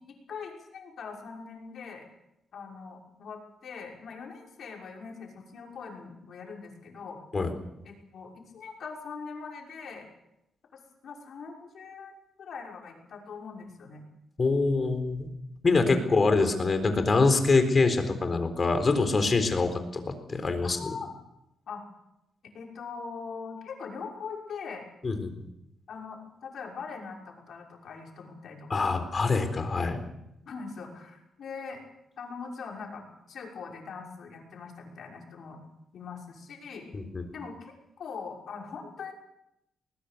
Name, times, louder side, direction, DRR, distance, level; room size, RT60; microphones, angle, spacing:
voice 1, 0.0-2.1 2.5-7.2 7.8-10.0 10.7-14.0 20.6-21.1 21.7-21.8 22.5-24.9 25.9-29.0 30.4-31.8 32.2-35.6 35.9-36.8 37.3-37.7 38.0-39.1, left 5 dB, 65° left, 0 dB, 6.0 m, -42 dB
voice 2, 14.4-15.3 15.6-20.9 25.0-25.3 28.7-30.0 36.9-37.2, left 3 dB, 35° left, 8 dB, 4.0 m, -25 dB
20.5 x 20.0 x 6.9 m, 0.87 s
cardioid pair, 100°, 0 cm